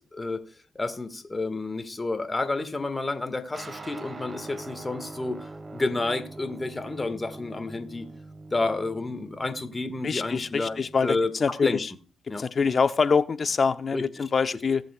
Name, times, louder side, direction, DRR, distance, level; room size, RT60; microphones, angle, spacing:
voice 1, 0.1-0.4 0.8-8.1 8.5-11.3 11.6-11.8 12.3-12.4 13.9-14.2, left 2 dB, 25° left, 9 dB, 1.8 m, -30 dB
sound 1, 3.5-11.3, right 3 dB, 35° right, 0.9 m, -43 dB
voice 2, 10.0-11.9 12.4-14.8, left 5 dB, 50° left, 12 dB, 0.7 m, -25 dB
18.0 x 7.6 x 2.4 m, 0.36 s
supercardioid pair, 50°, 0 cm